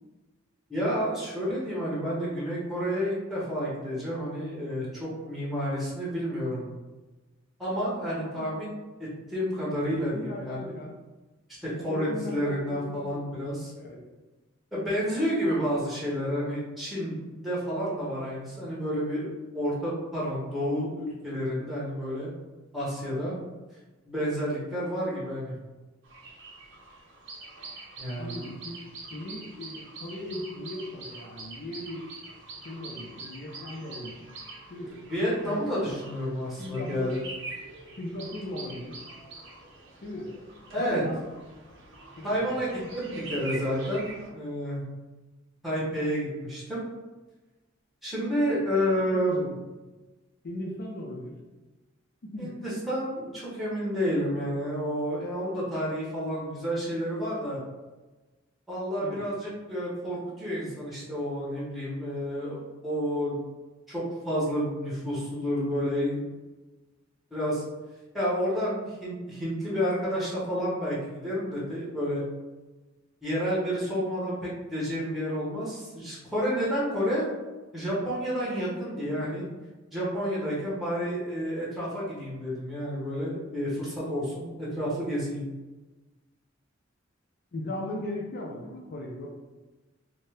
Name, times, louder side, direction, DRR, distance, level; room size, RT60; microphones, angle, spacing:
voice 1, 0.7-6.7 7.6-8.7 9.0-10.8 11.6-13.7 14.7-19.3 19.5-22.3 22.7-23.3 24.0-25.5 28.0-28.3 35.1-37.2 40.7-41.0 42.2-44.1 44.3-44.9 45.6-46.9 48.0-49.3 52.4-57.6 58.7-63.4 63.9-66.2 67.3-67.6 68.1-72.2 73.2-77.3 77.7-79.5 79.9-85.4, equal, ahead, -7 dB, 0.7 m, -30 dB
voice 2, 9.9-11.0 11.9-13.4 13.8-14.0 28.2-28.8 29.1-32.1 32.6-34.3 34.7-35.0 35.4-35.6 35.9-36.0 36.6-37.2 38.0-39.0 40.0-40.3 40.8-41.3 42.2-42.6 49.1-49.7 50.4-51.4 52.2-52.6 59.0-59.3 87.5-89.3, left 1 dB, 50° left, -1 dB, 0.4 m, -38 dB
sound 1, 26.0-44.3, right 2 dB, 60° right, 0.6 m, -44 dB
2.7 x 2.1 x 3.2 m, 1.2 s
head